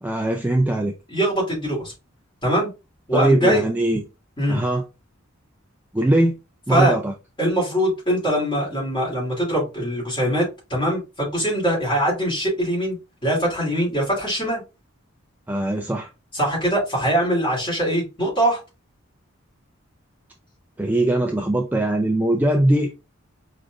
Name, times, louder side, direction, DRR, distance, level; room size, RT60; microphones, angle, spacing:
voice 1, 0.0-0.9 3.1-4.0 4.5-4.8 5.9-6.4 6.7-7.1 15.5-16.1 20.8-22.9, right 1 dB, 10° right, 0.3 m, -20 dB
voice 2, 1.1-1.9 2.4-2.7 3.1-3.6 4.4-4.6 6.7-7.0 7.4-13.0 13.2-14.6 16.3-18.6, right 1 dB, 20° left, 2.6 m, -22 dB
4.8 x 3.2 x 2.4 m
head